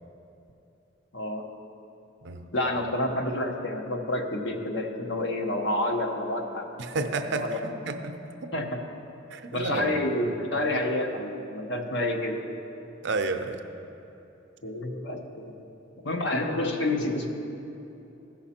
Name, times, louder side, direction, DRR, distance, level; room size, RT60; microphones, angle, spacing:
voice 1, 2.5-7.6 8.5-8.8 9.5-12.4 14.6-15.6 16.0-17.3, left 1 dB, 65° left, 3 dB, 1.0 m, -29 dB
voice 2, 6.8-8.5 9.3-9.9 13.0-13.6, right 3 dB, 65° right, 7 dB, 0.6 m, -31 dB
15.0 x 5.7 x 4.3 m, 2.9 s
head